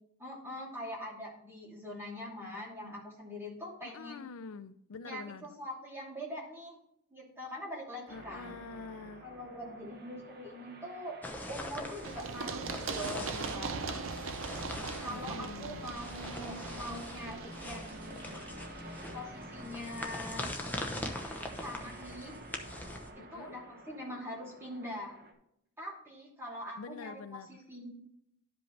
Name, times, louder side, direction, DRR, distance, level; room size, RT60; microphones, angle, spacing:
voice 1, 0.2-4.3 5.0-6.8 7.1-8.6 9.2-11.2 11.5-14.1 15.0-18.4 19.1-20.5 21.6-22.4 23.2-25.2 25.8-27.9, equal, 10° right, 2.8 m, -43 dB
voice 2, 3.8-5.6 8.1-9.2 15.1-16.0 23.2-23.5 26.8-27.6, left 5 dB, 85° left, 0.5 m, -46 dB
sound 1, 8.1-25.3, right 1 dB, 45° right, 1.0 m, -50 dB
sound 2, 11.2-23.1, left 1 dB, 10° left, 0.8 m, -43 dB
Run, 12.0-19.7, right 4 dB, 65° right, 0.6 m, -41 dB
12.0 x 5.2 x 3.3 m
head